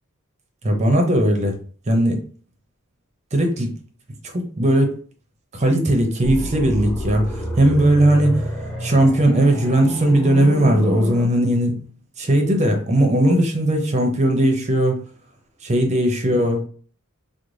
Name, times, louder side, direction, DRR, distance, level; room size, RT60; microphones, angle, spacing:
voice 1, 0.6-1.6 1.9-2.2 3.3-3.7 4.3-5.0 5.5-7.3 7.6-8.4 8.8-11.8 12.2-15.0 15.6-16.7, right 1 dB, 30° right, 3 dB, 0.6 m, -18 dB
sound 1, 6.2-11.2, equal, 5° left, 0.8 m, -28 dB
3.2 x 2.0 x 3.8 m, 0.43 s
head